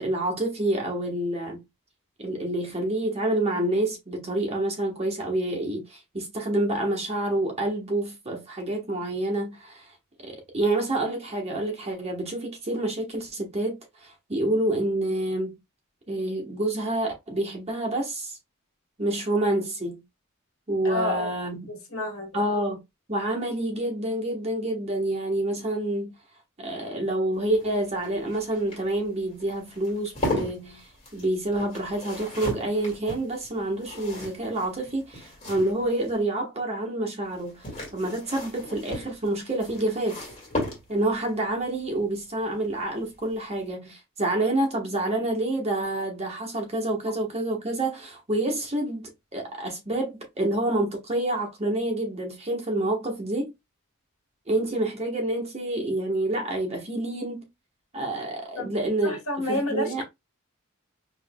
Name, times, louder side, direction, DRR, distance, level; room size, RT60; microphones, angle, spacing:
voice 1, 0.0-1.6 2.2-9.9 10.2-13.8 14.0-15.6 16.1-18.4 19.0-20.0 20.7-21.7 22.3-22.8 23.1-26.1 26.6-37.6 37.9-40.3 40.9-53.5 54.5-57.5 57.9-59.2 59.5-60.0, right 1 dB, 30° right, 1.1 m, -28 dB
voice 2, 20.8-21.4 21.7-22.5 58.6-58.7 59.0-60.0, left 1 dB, 70° left, 1.6 m, -30 dB
sound 1, 27.4-36.2 37.3-41.2 42.8-43.2 43.4-43.5, left 1 dB, 30° left, 2.0 m, -36 dB
4.6 x 3.0 x 2.2 m
head